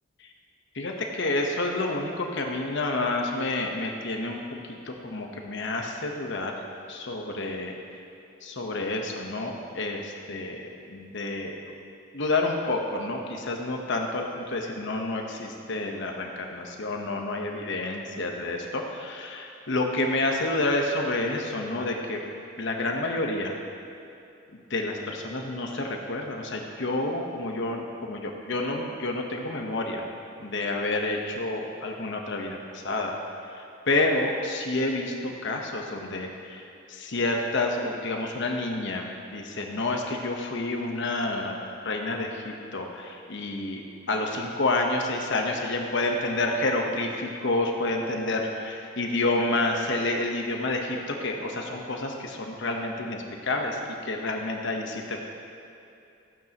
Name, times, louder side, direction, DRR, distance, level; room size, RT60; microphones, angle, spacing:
voice 1, 0.7-6.5 6.9-7.7 8.4-11.7 12.1-22.2 22.6-23.5 24.5-30.1 30.4-33.1 33.5-41.5 41.8-43.8 44.1-55.2, left 2 dB, 65° left, 1 dB, 1.1 m, -29 dB
14.5 x 9.2 x 3.0 m, 2.7 s
head